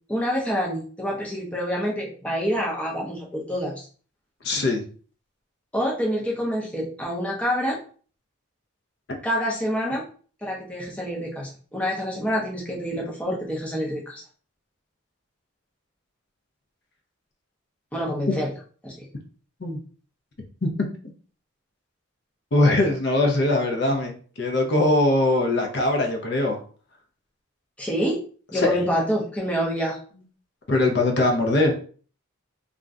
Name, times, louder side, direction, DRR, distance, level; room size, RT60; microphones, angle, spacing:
voice 1, 0.1-3.9 5.7-7.8 9.2-10.0 10.4-14.2 17.9-18.5 18.8-19.1 27.8-28.2 28.5-30.0, equal, 5° left, -3 dB, 0.5 m, -27 dB
voice 2, 4.4-4.8 19.6-19.8 20.6-20.7 22.5-24.1 24.4-26.6 28.5-28.9 30.7-31.7, left 2 dB, 55° left, 2 dB, 0.6 m, -21 dB
2.5 x 2.1 x 3.5 m, 0.42 s
head